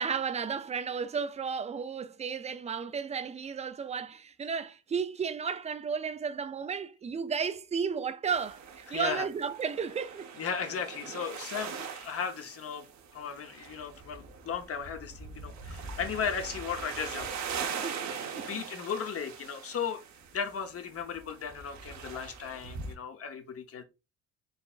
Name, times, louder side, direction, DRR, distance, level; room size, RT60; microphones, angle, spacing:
voice 1, 0.0-10.3 17.8-18.6, right 6 dB, 25° right, 0.4 m, -33 dB
sound 1, 8.3-23.0, right 6 dB, 65° right, 0.8 m, -42 dB
voice 2, 8.9-9.2 10.4-12.9 13.1-17.3 18.5-20.0 20.3-23.8, left 7 dB, 50° left, 0.8 m, -36 dB
4.0 x 3.4 x 2.4 m
cardioid pair, 90°, 30 cm